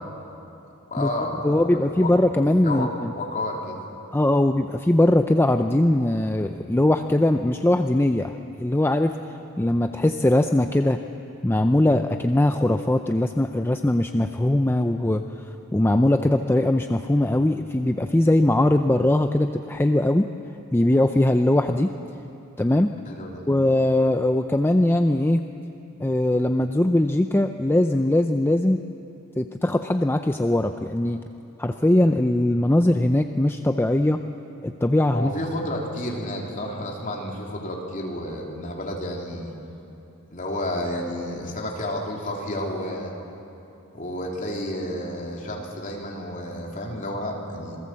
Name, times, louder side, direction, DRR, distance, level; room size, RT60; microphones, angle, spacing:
voice 1, 0.9-2.1 2.6-2.9 3.1-3.8 23.1-23.4 35.1-39.5 40.3-43.1 43.9-47.8, left 1 dB, 35° left, -1 dB, 3.3 m, -31 dB
voice 2, 1.4-3.1 4.1-9.2 9.6-11.0 11.4-15.2 15.7-20.3 20.7-21.9 22.6-22.9 23.5-25.4 26.0-28.8 29.4-31.2 31.6-34.2 34.6-35.3, left 1 dB, 10° left, 7 dB, 0.5 m, -21 dB
27.0 x 18.5 x 7.6 m, 3.0 s
head